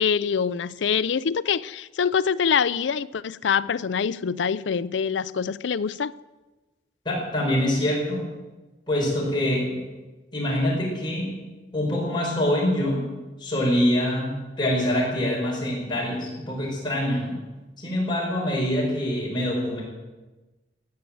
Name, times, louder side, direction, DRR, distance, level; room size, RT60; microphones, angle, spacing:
voice 1, 0.0-6.1, left 6 dB, 85° left, 0.5 m, -25 dB
voice 2, 7.0-8.2 8.9-9.8 10.3-11.4 11.7-13.1 13.4-17.4 17.8-19.8, left 1 dB, 25° left, 5.5 m, -25 dB
16.0 x 10.5 x 7.8 m
head